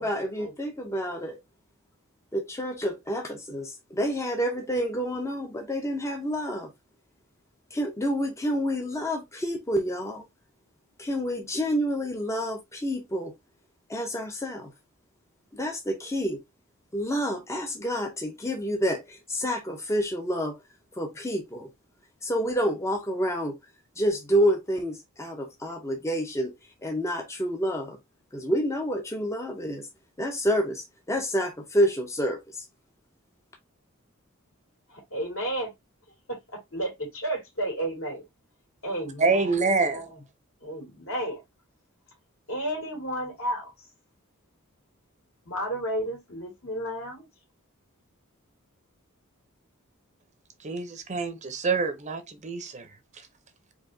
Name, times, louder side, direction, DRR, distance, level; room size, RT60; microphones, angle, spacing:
voice 1, 0.0-1.4 2.3-6.7 7.7-10.3 11.0-13.3 13.9-14.7 15.5-16.4 16.9-20.6 20.9-21.7 22.2-23.6 24.0-26.5 26.8-28.0 28.3-29.9 30.2-32.7, equal, 15° left, 0.5 m, -28 dB
voice 2, 34.9-35.7 36.3-36.4 36.7-38.2 38.8-39.5 39.9-40.0 40.6-41.4 42.5-43.7 45.5-47.2, right 1 dB, 70° left, 2.4 m, -32 dB
voice 3, 39.2-40.1 50.6-53.3, right 4 dB, 35° right, 0.6 m, -27 dB
4.6 x 2.6 x 2.6 m
head